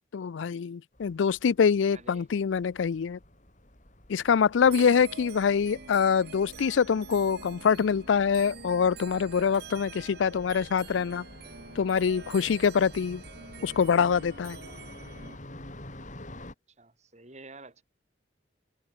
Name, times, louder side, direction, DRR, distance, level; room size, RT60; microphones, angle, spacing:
voice 1, 0.1-3.2 4.1-11.2 11.8-13.2 13.6-14.6, left 6 dB, 80° left, 0.4 m, -25 dB
sound 1, 0.9-16.5, left 1 dB, 40° left, 5.4 m, -49 dB
voice 2, 1.9-2.3 4.6-5.1 16.8-17.8, right 2 dB, 40° right, 5.1 m, -48 dB
sound 2, 4.6-15.4, right 5 dB, 55° right, 2.1 m, -46 dB
head